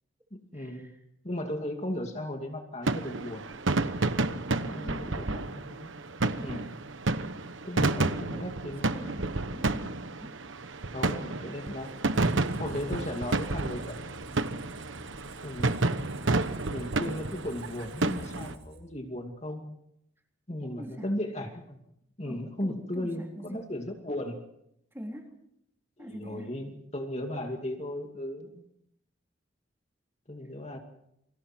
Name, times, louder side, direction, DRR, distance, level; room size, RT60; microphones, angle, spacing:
voice 1, 0.3-0.9 1.2-3.5 4.7-5.9 6.4-6.7 7.6-9.3 10.9-11.9 12.6-14.1 15.4-15.9 16.7-19.7 20.5-21.8 22.2-24.4 26.0-28.7 30.3-30.8, left 1 dB, 35° left, 3 dB, 2.5 m, -36 dB
sound 1, 2.8-18.5, right 2 dB, 80° right, 1.2 m, -30 dB
voice 2, 4.6-5.4 7.9-8.6 8.8-10.9 20.6-21.1 22.2-23.6 24.9-25.3 26.0-26.5, equal, 10° right, 1 dB, 3.8 m, -43 dB
Squeak, 11.6-19.3, right 1 dB, 35° right, 5.3 m, -50 dB
29.0 x 25.5 x 4.5 m, 0.76 s
head